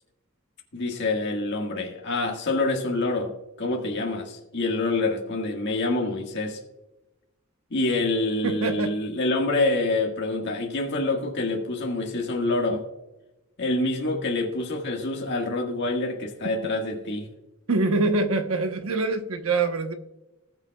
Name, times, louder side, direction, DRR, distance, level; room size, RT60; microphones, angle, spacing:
voice 1, 0.7-3.3 3.6-6.6 7.7-12.8 13.6-17.3, left 2 dB, 55° left, 1 dB, 1.7 m, -26 dB
voice 2, 8.4-9.0 17.7-20.0, right 3 dB, 70° right, 6 dB, 1.1 m, -24 dB
20.0 x 6.9 x 2.3 m, 0.97 s
head